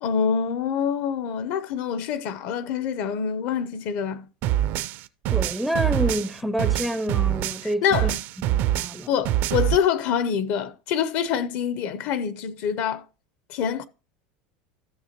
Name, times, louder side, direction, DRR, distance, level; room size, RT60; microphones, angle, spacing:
voice 1, 0.0-4.3 7.8-8.2 9.1-13.0 13.5-13.8, left 7 dB, 60° left, 0.7 m, -25 dB
sound 1, 4.4-7.7 7.9-9.8, right 13 dB, 55° right, 0.5 m, -24 dB
voice 2, 5.3-8.1 8.5-9.1, equal, ahead, 0.5 m, -28 dB
14.0 x 6.4 x 2.9 m
supercardioid pair, 125°, 4 cm